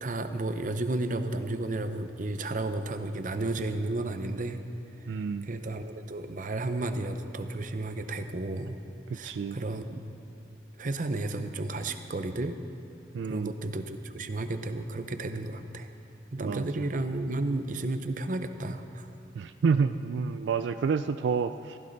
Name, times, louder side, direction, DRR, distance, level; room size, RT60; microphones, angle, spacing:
voice 1, 0.0-4.6 5.0-5.2 5.4-8.8 9.1-10.0 10.8-12.6 13.2-15.9 16.3-19.1, right 2 dB, 45° right, 9 dB, 0.7 m, -32 dB
voice 2, 5.1-5.5 9.1-9.6 13.1-13.5 16.4-16.9 19.4-21.8, right 5 dB, 85° right, 11 dB, 0.3 m, -29 dB
15.5 x 15.0 x 4.0 m, 2.7 s
head